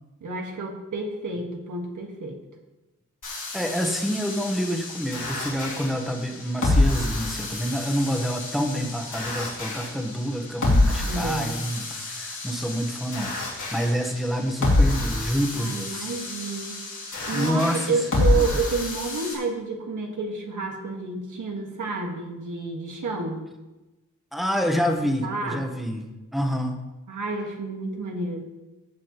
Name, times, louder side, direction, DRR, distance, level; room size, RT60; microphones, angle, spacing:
voice 1, 0.2-2.4 11.1-11.6 15.6-16.7 17.2-23.4 24.9-25.6 27.1-28.5, right 3 dB, 90° right, 2 dB, 1.6 m, -30 dB
sound 1, 3.2-19.3, left 2 dB, 85° left, 2.8 m, -27 dB
voice 2, 3.5-16.1 17.3-18.6 24.3-26.1 26.3-26.8, equal, ahead, 3 dB, 1.1 m, -27 dB
14.5 x 7.3 x 3.0 m, 1.1 s
wide cardioid pair, 145°, 30 cm